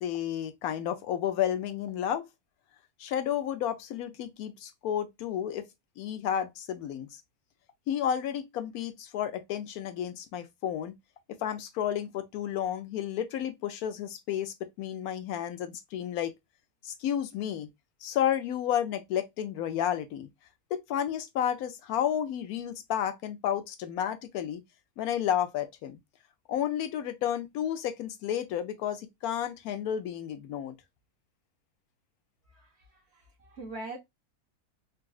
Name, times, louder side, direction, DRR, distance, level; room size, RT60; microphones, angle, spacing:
voice 1, 0.0-2.3 3.0-5.6 6.0-7.1 7.9-10.9 11.3-16.3 16.8-17.7 18.0-20.3 20.7-24.6 25.0-26.0 26.5-30.8, left 10 dB, 80° left, 1.1 m, -31 dB
voice 2, 33.1-34.0, right 2 dB, 50° right, 1.0 m, -41 dB
4.0 x 2.4 x 2.3 m
omnidirectional pair, 1.6 m